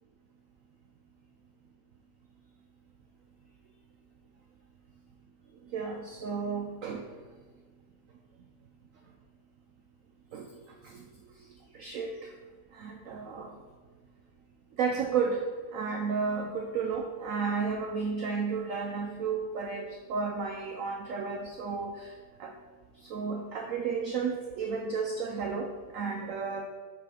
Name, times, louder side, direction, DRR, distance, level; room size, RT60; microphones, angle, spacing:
voice 1, 5.7-7.1 10.3-10.5 10.8-11.0 11.7-12.3 12.7-13.5 14.8-15.4 15.7-22.1 22.4-22.5 23.0-26.7, right 5 dB, 75° right, 2 dB, 0.7 m, -32 dB
5.9 x 4.0 x 5.0 m, 1.5 s
omnidirectional pair, 1.9 m